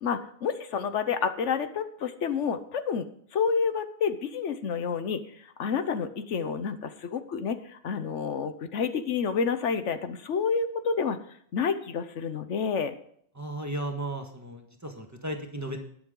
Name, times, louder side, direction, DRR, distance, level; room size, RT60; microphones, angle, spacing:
voice 1, 0.0-3.0 3.3-5.2 5.6-11.2 11.5-12.9, left 6 dB, 75° left, 10 dB, 1.2 m, -29 dB
voice 2, 13.3-15.8, right 1 dB, 15° right, 3 dB, 1.5 m, -35 dB
20.0 x 7.2 x 3.8 m, 0.64 s
omnidirectional pair, 1.2 m